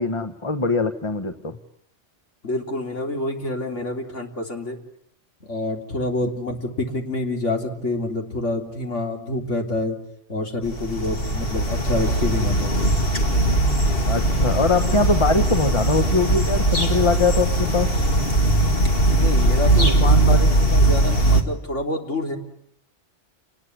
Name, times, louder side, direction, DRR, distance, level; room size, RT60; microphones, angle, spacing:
voice 1, 0.0-1.6 14.1-17.9 19.9-20.5, left 3 dB, 25° left, 7 dB, 1.2 m, -22 dB
voice 2, 2.4-4.8 5.4-10.0 10.3-12.8 19.2-20.1 20.7-22.4, left 2 dB, 75° left, 2 dB, 3.8 m, -27 dB
sound 1, 10.7-21.4, right 1 dB, 50° left, 2.6 m, -19 dB
29.5 x 20.5 x 9.8 m, 0.72 s
omnidirectional pair, 1.2 m